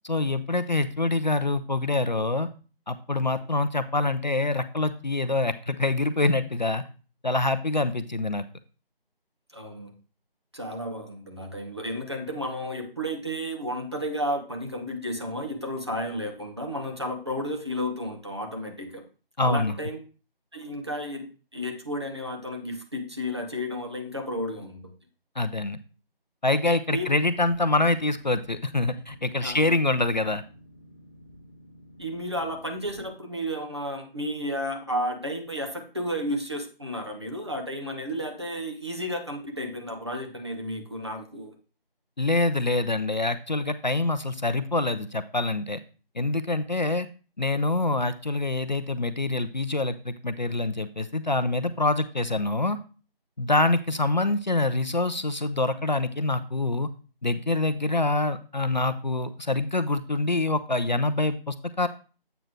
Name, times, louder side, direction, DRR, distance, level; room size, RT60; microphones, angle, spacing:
voice 1, 0.0-2.5 2.9-6.8 7.2-8.4 19.4-19.7 25.4-25.8 26.4-30.4 42.2-45.8 46.2-47.1 47.4-52.8 53.4-56.9 57.2-61.9, left 2 dB, 50° left, 11 dB, 0.5 m, -25 dB
voice 2, 9.5-9.9 10.5-19.0 19.4-20.0 20.5-24.9 26.9-27.1 29.4-29.7 32.0-41.5, equal, 30° right, 4 dB, 0.9 m, -32 dB
Boat Water vehicle, 27.1-33.1, equal, 10° left, 0.9 m, -51 dB
7.9 x 3.2 x 6.0 m, 0.36 s
figure-of-eight pair, 170°, 30 cm